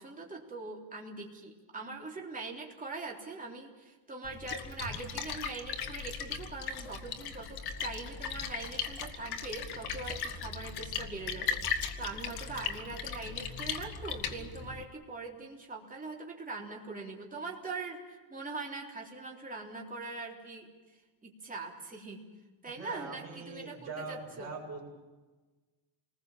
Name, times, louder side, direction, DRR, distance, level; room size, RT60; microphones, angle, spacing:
voice 1, 0.0-22.2 22.6-24.5, right 3 dB, 20° right, -1 dB, 3.6 m, -42 dB
Splash splatter, 4.2-14.8, left 6 dB, 55° left, 2.0 m, -38 dB
voice 2, 22.7-24.8, right 3 dB, 35° right, 0 dB, 7.4 m, -42 dB
28.5 x 20.5 x 7.4 m, 1.2 s
cardioid pair, 170°, 45 cm